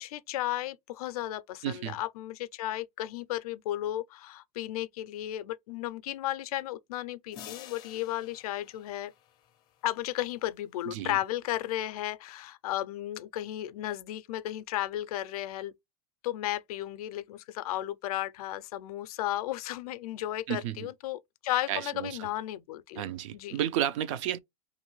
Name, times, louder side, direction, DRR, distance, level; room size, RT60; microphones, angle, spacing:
voice 1, 0.0-9.1 9.8-15.7 16.2-23.0 23.3-23.6, left 14 dB, 80° left, 0.4 m, -34 dB
voice 2, 1.6-2.0 10.9-11.2 20.5-20.9 21.7-22.2 23.0-24.4, right 11 dB, 55° right, 0.5 m, -32 dB
sound 1, 7.3-9.8, left 11 dB, 20° left, 0.4 m, -49 dB
3.0 x 2.5 x 3.0 m
supercardioid pair, 165°, 19 cm